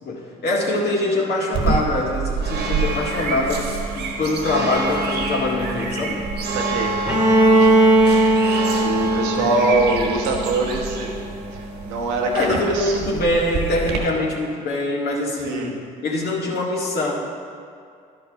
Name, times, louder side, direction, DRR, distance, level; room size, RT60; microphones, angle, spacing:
voice 1, 0.0-3.7 3.9-6.2 9.2-9.7 12.3-17.1, left 2 dB, 60° left, -2 dB, 1.9 m, -24 dB
sound 1, 1.5-14.0, right 3 dB, 60° right, 1.4 m, -27 dB
voice 2, 6.5-6.9 7.4-7.8 8.5-11.1 11.5-13.0 15.4-15.8, right 2 dB, 80° right, 0 dB, 1.1 m, -24 dB
Bowed string instrument, 7.1-10.9, right 1 dB, 5° right, 1.6 m, -18 dB
11.0 x 5.4 x 4.6 m, 2.3 s
hypercardioid pair, 55°, 19 cm